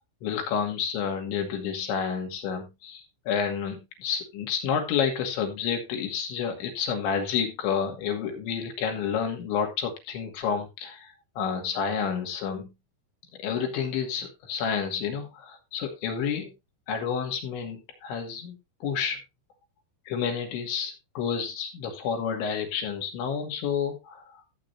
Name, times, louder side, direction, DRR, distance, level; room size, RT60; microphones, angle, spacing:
voice 1, 0.2-12.7 13.4-16.5 16.9-19.2 20.1-24.4, left 7 dB, 80° left, 3 dB, 4.7 m, -30 dB
14.5 x 8.7 x 2.8 m, 0.24 s
omnidirectional pair, 5.3 m